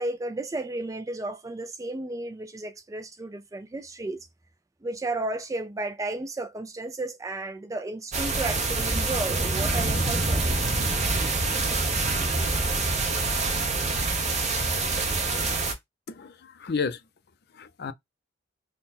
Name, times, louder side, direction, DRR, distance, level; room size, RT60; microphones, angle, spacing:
voice 1, 0.0-4.3 4.8-10.5, right 2 dB, 15° right, 0.3 m, -33 dB
sound 1, 8.1-15.7, right 3 dB, 35° right, 0.9 m, -26 dB
voice 2, 16.1-17.0 17.5-17.9, left 5 dB, 55° left, 0.5 m, -31 dB
3.8 x 2.2 x 4.1 m
head